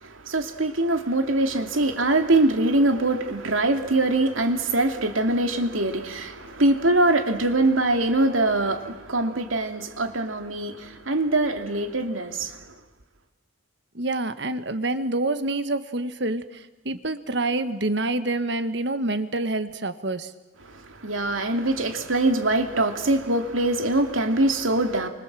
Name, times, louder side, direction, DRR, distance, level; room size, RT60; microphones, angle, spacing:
voice 1, 0.0-12.6 20.7-25.1, right 2 dB, 90° right, 2.7 m, -23 dB
voice 2, 13.9-20.3, right 2 dB, 60° right, 1.5 m, -27 dB
29.5 x 25.5 x 7.7 m
head